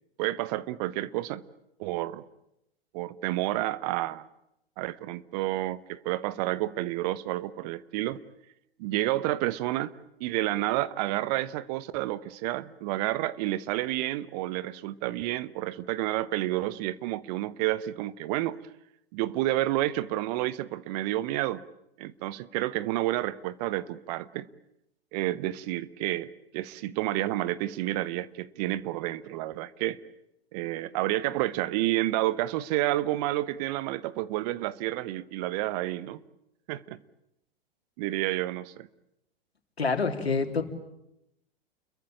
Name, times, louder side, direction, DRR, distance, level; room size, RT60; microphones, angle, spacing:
voice 1, 0.2-1.4 1.8-2.2 2.9-4.2 4.8-8.2 8.8-9.9 10.2-18.6 19.1-21.6 22.0-24.5 25.1-30.0 30.5-36.2 36.7-37.0 38.0-38.9, right 16 dB, 40° right, 1.1 m, -30 dB
voice 2, 39.8-40.6, left 4 dB, 80° left, 3.4 m, -26 dB
30.0 x 22.0 x 8.8 m
figure-of-eight pair, 100°, 31 cm